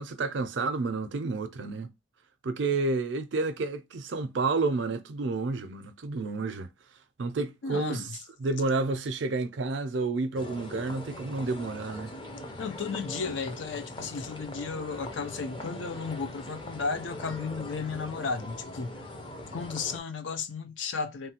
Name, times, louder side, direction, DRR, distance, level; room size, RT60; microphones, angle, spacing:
voice 1, 0.0-1.9 2.4-6.7 7.2-8.1 8.4-12.2, right 3 dB, 70° right, 0.5 m, -30 dB
voice 2, 7.6-8.2 12.6-19.0 19.5-21.3, left 5 dB, 70° left, 0.5 m, -34 dB
sound 1, 10.3-20.0, left 1 dB, 25° left, 0.5 m, -41 dB
3.2 x 2.2 x 2.8 m
head